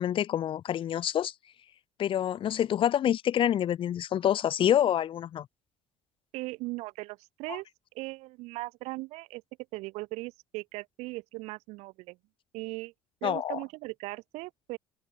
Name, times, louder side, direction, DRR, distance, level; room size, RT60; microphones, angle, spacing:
voice 1, 0.0-1.3 2.0-5.5 13.2-13.6, left 10 dB, 45° left, 1.3 m, -27 dB
voice 2, 6.3-7.6 7.9-9.4 9.7-12.2 12.5-12.9 13.2-14.8, right 22 dB, 65° right, 6.7 m, -38 dB
hypercardioid pair, 60°, 12 cm